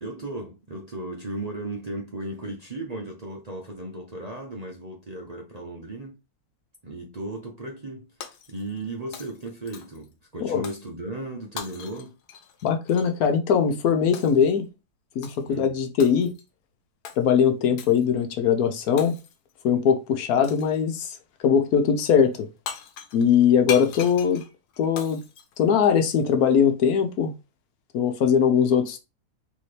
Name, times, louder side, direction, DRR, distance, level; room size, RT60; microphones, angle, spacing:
voice 1, 0.0-6.2 6.8-12.2 15.4-15.7 23.7-23.9, right 1 dB, 35° right, 0.7 m, -36 dB
Shatter, 8.2-8.9 9.1-10.1 10.6-10.9 11.6-13.1 14.1-14.5 15.2-15.6 16.0-16.5 17.0-17.2 17.8-18.1 19.0-19.5 20.4-20.8 22.4-22.5 22.7-26.2, left 7 dB, 90° left, 1.3 m, -39 dB
voice 2, 12.6-14.7 15.2-16.3 17.2-19.2 19.6-21.2 21.4-22.5 23.1-24.4 24.8-25.2 25.6-27.3 27.9-29.0, left 7 dB, 70° left, 1.1 m, -21 dB
4.2 x 3.2 x 3.2 m
omnidirectional pair, 1.7 m